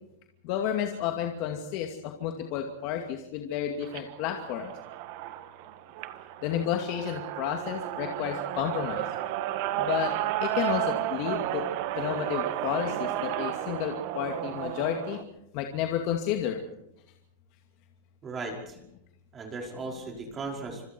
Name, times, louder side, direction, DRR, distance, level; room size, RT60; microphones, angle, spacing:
voice 1, 0.4-4.7 6.4-9.0 9.8-11.7 11.9-15.2 15.5-16.6, left 9 dB, 45° left, 3 dB, 2.4 m, -31 dB
sound 1, 3.8-15.2, right 13 dB, 50° right, 1.6 m, -33 dB
voice 2, 18.2-18.8 19.3-20.8, right 3 dB, 20° right, 1 dB, 5.2 m, -37 dB
26.5 x 26.0 x 4.6 m, 0.81 s
supercardioid pair, 155°, 0 cm